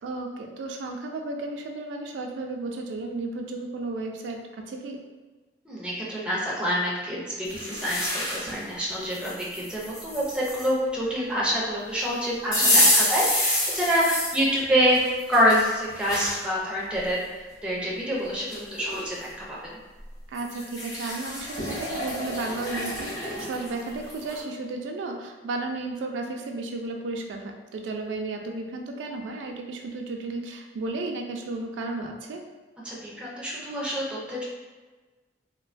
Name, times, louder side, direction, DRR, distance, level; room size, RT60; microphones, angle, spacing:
voice 1, 0.0-5.0 12.6-12.8 20.3-32.4, right 2 dB, 90° right, 2 dB, 0.3 m, -33 dB
voice 2, 5.7-19.8 32.8-34.4, equal, 5° right, -5 dB, 0.4 m, -26 dB
sound 1, 7.5-8.6 9.1-10.7 12.5-14.4 14.9-16.4 17.0-17.1 18.1-18.2 18.5-19.1 20.4-24.4, left 1 dB, 20° left, 0.7 m, -27 dB
2.3 x 2.2 x 2.4 m, 1.3 s
head